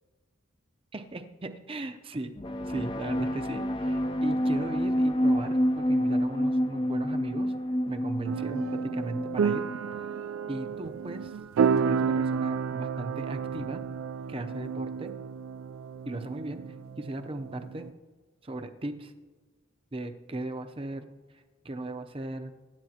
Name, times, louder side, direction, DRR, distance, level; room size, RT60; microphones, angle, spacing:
voice 1, 0.9-2.3 2.7-7.5 7.9-9.6 10.0-10.1 10.5-11.4 11.7-13.8 14.3-15.1 16.1-16.6 17.0-17.9 18.4-19.1 19.9-21.1 21.6-22.5, right 2 dB, 25° right, 7 dB, 0.6 m, -37 dB
sound 1, 2.4-9.9, equal, 25° left, 0.4 m, -28 dB
sound 2, 8.2-17.9, right 6 dB, 80° right, 0.3 m, -31 dB
23.5 x 10.5 x 2.8 m, 1.4 s
head